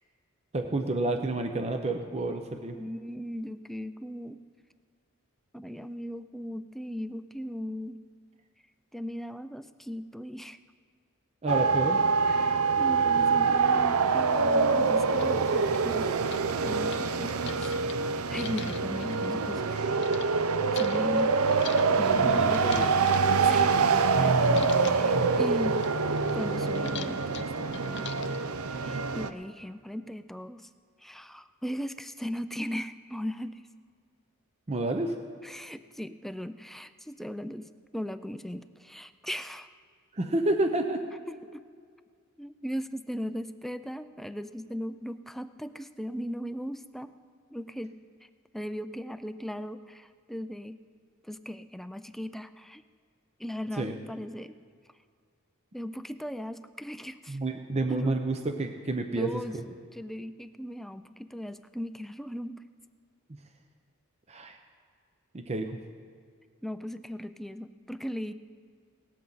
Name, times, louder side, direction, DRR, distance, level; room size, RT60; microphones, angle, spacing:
voice 1, 0.5-2.8 11.4-12.0 22.2-22.8 34.7-35.1 40.1-41.0 53.7-53.9 57.3-59.4 64.3-64.6 65.3-65.8, right 2 dB, 30° right, 5 dB, 0.6 m, -29 dB
voice 2, 2.7-4.4 5.5-8.0 8.9-10.6 12.3-16.1 16.6-17.7 18.3-20.0 20.7-21.4 22.0-22.6 23.4-23.8 24.2-25.8 26.3-28.3 28.8-30.7 31.0-33.6 35.4-39.7 41.3-41.6 42.4-47.1 47.5-47.9 48.5-50.8 51.2-52.8 53.4-54.5 55.7-57.4 57.9-58.2 59.1-59.6 59.9-62.6 66.6-68.3, equal, ahead, 11 dB, 0.3 m, -38 dB
sound 1, 11.5-29.3, right 4 dB, 80° right, 0.6 m, -25 dB
sound 2, 14.0-14.1 14.6-14.7 15.0-20.3 20.7-24.2 24.4-25.1 25.5-28.5, left 8 dB, 55° left, 0.6 m, -44 dB
18.0 x 13.0 x 4.0 m, 2.1 s
head